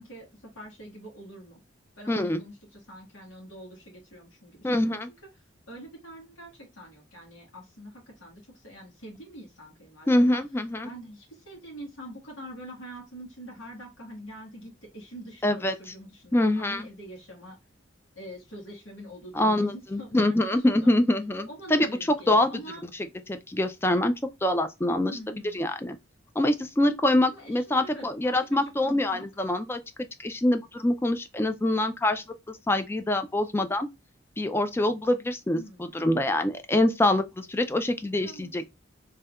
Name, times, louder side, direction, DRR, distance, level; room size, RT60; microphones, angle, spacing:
voice 1, 0.0-1.6 2.0-5.0 5.7-10.4 10.8-17.6 18.1-20.9 21.5-22.8 25.0-25.6 27.3-29.3 35.5-36.0 38.2-38.6, equal, 85° left, 1.5 m, -44 dB
voice 2, 2.1-2.4 4.6-5.1 10.1-10.9 15.4-15.9 16.3-16.8 19.3-21.9 22.3-22.5 23.3-24.1 24.4-25.2 25.5-26.0 26.4-29.8 30.2-33.9 34.4-38.6, left 1 dB, 10° left, 0.3 m, -25 dB
3.4 x 2.7 x 2.2 m
head